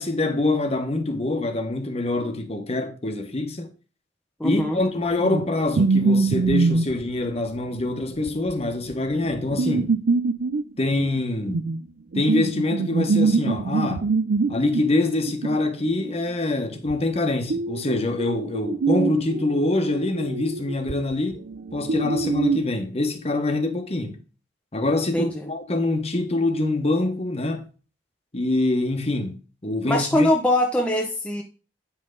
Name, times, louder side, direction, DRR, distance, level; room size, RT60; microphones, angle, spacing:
voice 1, 0.0-3.7 4.4-10.0 10.8-11.6 12.1-14.0 14.5-21.4 21.7-24.2 24.7-27.7 28.3-29.4 29.6-30.3, left 2 dB, 35° left, 1.2 m, -25 dB
voice 2, 4.4-4.8 25.1-25.5 29.8-31.4, left 1 dB, 5° left, 0.8 m, -22 dB
sound 1, 4.8-4.9 5.2-5.5 5.8-7.1 7.4-7.5 7.7-7.8 8.3-11.8 12.1-14.9 15.3-16.1 16.9-17.0 17.5-22.6, right 4 dB, 70° right, 0.5 m, -24 dB
9.0 x 5.7 x 3.9 m
head